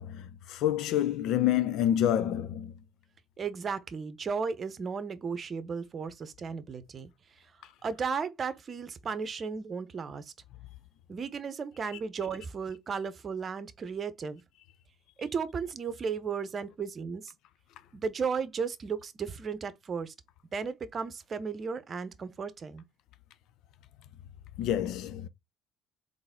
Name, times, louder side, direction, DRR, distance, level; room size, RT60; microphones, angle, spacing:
voice 1, 0.0-2.7 24.6-25.3, left 11 dB, 65° left, 0.6 m, -28 dB
voice 2, 3.4-7.5 7.8-10.3 11.1-14.4 15.2-17.3 17.9-20.1 20.5-22.8, right 5 dB, 40° right, 0.9 m, -35 dB
4.0 x 3.5 x 3.8 m
hypercardioid pair, 70°, 0 cm